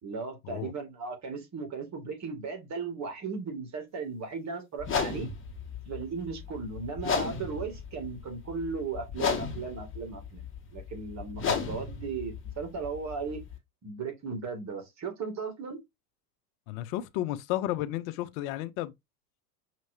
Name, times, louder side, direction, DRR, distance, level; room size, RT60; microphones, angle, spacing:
voice 1, 0.0-5.3 5.9-10.4 10.7-13.4 13.8-15.8, right 4 dB, 35° right, 2.3 m, -36 dB
sound 1, 4.8-13.6, left 5 dB, 25° left, 1.7 m, -35 dB
voice 2, 16.7-18.9, left 14 dB, 60° left, 0.8 m, -33 dB
5.8 x 3.1 x 2.8 m
hypercardioid pair, 95°, 48 cm